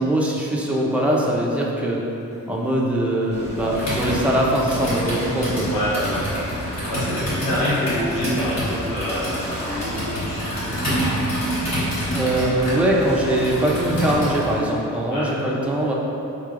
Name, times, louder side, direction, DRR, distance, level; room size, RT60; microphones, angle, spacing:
voice 1, 0.0-2.0 2.5-5.7 12.1-15.9, right 1 dB, 5° right, -4 dB, 0.4 m, -22 dB
sound 1, 2.0-9.6 9.9-14.5, right 1 dB, 20° right, 0.8 m, -46 dB
Ocean / Boat Water vehicle, 3.3-14.6, equal, 20° left, 0.8 m, -35 dB
Computer keyboard, 3.7-14.5, equal, 55° left, 1.5 m, -27 dB
voice 2, 5.7-10.7 11.1-11.2 15.1-15.3, equal, 80° left, -9 dB, 0.9 m, -27 dB
3.7 x 3.2 x 2.4 m, 2.8 s
wide cardioid pair, 95°, 32 cm